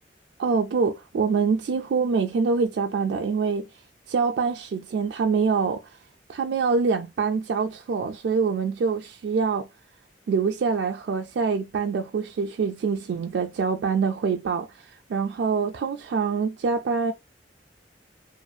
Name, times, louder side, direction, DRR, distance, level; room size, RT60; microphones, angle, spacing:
voice 1, 0.4-3.6 4.1-5.8 6.3-9.7 10.3-17.1, right 5 dB, 70° right, 0.3 m, -25 dB
2.6 x 2.4 x 2.2 m
head